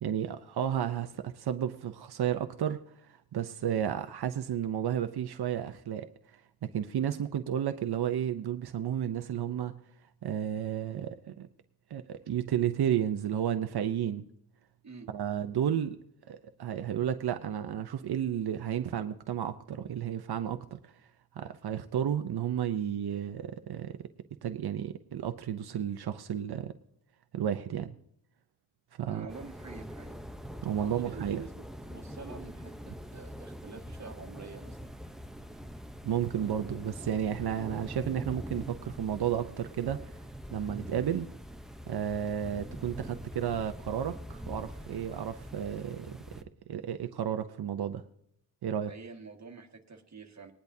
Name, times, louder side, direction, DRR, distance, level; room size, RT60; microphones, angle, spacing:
voice 1, 0.0-9.8 10.2-11.5 11.9-14.2 15.1-16.0 16.3-21.0 21.3-24.0 24.4-26.7 27.3-27.9 29.0-29.3 30.6-31.4 36.0-40.2 40.5-41.3 41.9-46.2 46.7-48.0 48.6-48.9, right 9 dB, 90° right, 8 dB, 0.6 m, -32 dB
voice 2, 29.1-30.2 30.8-34.9 48.9-50.5, right 4 dB, 45° right, 3 dB, 1.7 m, -47 dB
sound 1, 29.3-46.4, equal, ahead, 0.7 m, -44 dB
19.5 x 10.5 x 2.7 m, 0.72 s
wide cardioid pair, 130°, 37 cm